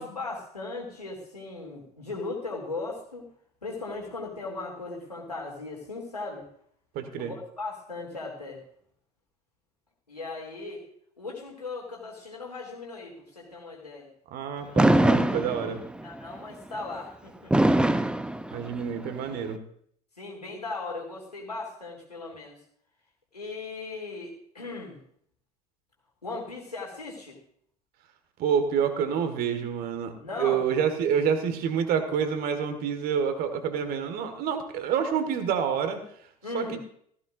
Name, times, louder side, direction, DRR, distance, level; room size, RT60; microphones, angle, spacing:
voice 1, 0.0-3.2 3.6-6.5 7.2-8.6 10.1-10.9 11.2-14.1 16.0-17.7 20.2-22.6 23.3-25.0 26.2-27.4 30.2-30.6 36.4-36.8, left 3 dB, 90° left, -1 dB, 2.7 m, -37 dB
voice 2, 6.9-7.3 14.3-15.8 18.5-19.6 28.4-30.1 30.4-36.0 36.5-36.8, right 7 dB, 50° right, 8 dB, 1.8 m, -27 dB
Fireworks, 14.8-16.1 17.5-19.1, right 1 dB, 5° right, 0.8 m, -22 dB
16.0 x 14.5 x 2.6 m, 0.64 s
figure-of-eight pair, 65°, 19 cm